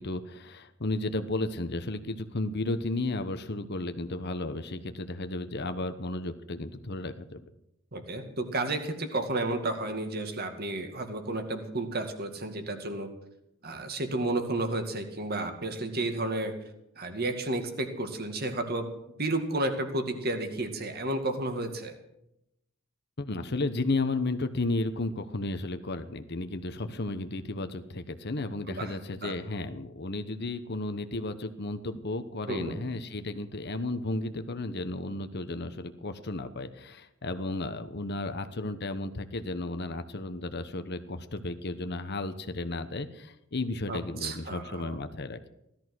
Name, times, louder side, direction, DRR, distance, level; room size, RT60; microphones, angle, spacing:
voice 1, 0.0-7.4 23.2-45.5, left 2 dB, 50° left, 9 dB, 1.1 m, -33 dB
voice 2, 7.9-13.1 13.6-16.5 17.0-18.9 19.2-22.0 28.7-28.9 29.2-29.3 32.5-32.8 43.9-45.0, right 2 dB, 45° right, 7 dB, 2.2 m, -32 dB
17.0 x 13.0 x 6.2 m, 0.82 s
head